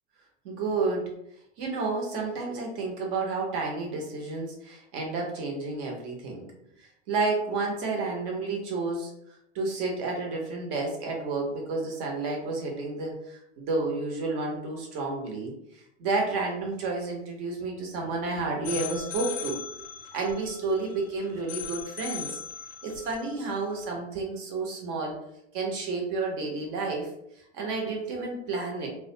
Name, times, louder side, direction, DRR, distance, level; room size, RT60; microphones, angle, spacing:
voice 1, 0.4-1.1 1.6-6.4 7.1-9.1 9.5-15.5 16.0-19.6 20.1-22.4 22.8-25.1 25.5-27.1 27.5-28.9, right 3 dB, 45° right, 0 dB, 0.9 m, -30 dB
sound 1, 18.6-23.9, left 8 dB, 70° left, 0.6 m, -39 dB
2.3 x 2.2 x 2.7 m, 0.77 s
hypercardioid pair, 120°, 36 cm